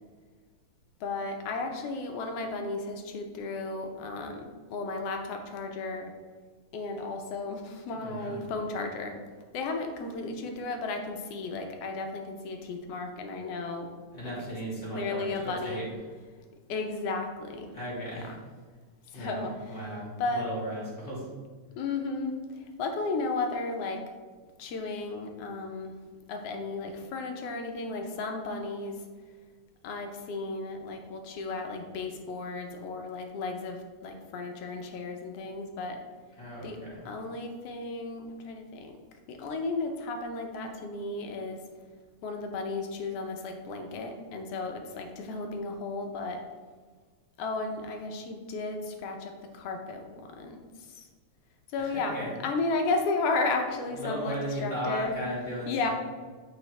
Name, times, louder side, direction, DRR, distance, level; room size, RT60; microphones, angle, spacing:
voice 1, 1.0-4.4 4.7-6.1 6.7-9.2 9.5-13.9 14.2-14.5 14.9-15.8 16.7-17.7 18.2-18.4 19.1-19.5 20.2-20.5 21.8-24.0 24.6-26.0 26.3-29.0 29.8-36.0 36.6-36.8 37.0-39.0 39.3-41.6 42.2-46.4 47.4-51.1 51.7-55.2 55.7-55.9, left 3 dB, 70° left, 4 dB, 1.5 m, -34 dB
voice 2, 7.9-8.5 14.1-15.9 17.7-18.3 19.1-21.3 36.4-37.1 51.8-52.3 53.9-55.9, equal, 20° left, -6 dB, 2.0 m, -36 dB
8.7 x 4.7 x 3.3 m, 1.4 s
omnidirectional pair, 3.3 m